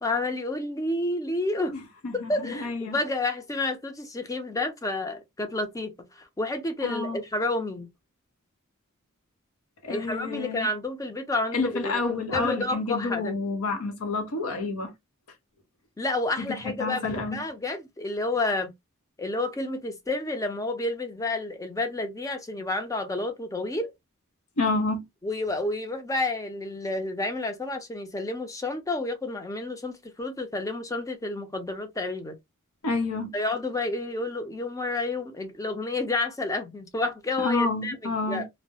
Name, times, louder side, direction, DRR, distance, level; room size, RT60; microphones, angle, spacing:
voice 1, 0.0-1.8 2.1-7.9 9.9-12.0 12.3-13.4 16.0-18.7 19.2-23.9 25.2-32.4 33.3-38.5, left 2 dB, 15° left, 0.5 m, -30 dB
voice 2, 1.7-3.0 6.8-7.2 9.8-10.7 11.5-14.9 16.4-17.4 24.6-25.0 32.8-33.3 37.4-38.5, left 3 dB, 85° left, 0.8 m, -29 dB
2.3 x 2.1 x 2.7 m
head